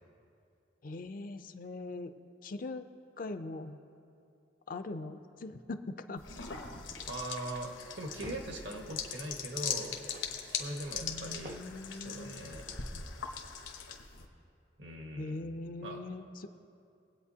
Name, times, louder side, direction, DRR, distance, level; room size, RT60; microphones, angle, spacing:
voice 1, 0.8-2.1 2.4-2.9 3.2-3.8 4.7-6.2 11.0-12.4 15.2-16.5, left 2 dB, 45° left, 9 dB, 0.5 m, -41 dB
sound 1, 6.2-14.3, left 7 dB, 80° left, 1.0 m, -40 dB
sound 2, 6.9-7.3 8.2-8.7 10.1-10.5 11.4-11.9 12.7-13.0, right 1 dB, 40° right, 0.6 m, -49 dB
voice 2, 7.1-10.0 10.4-11.5 11.9-12.6 14.8-15.5 15.8-16.0, right 1 dB, 70° right, 2 dB, 1.4 m, -41 dB
21.5 x 8.6 x 2.8 m, 2.6 s
head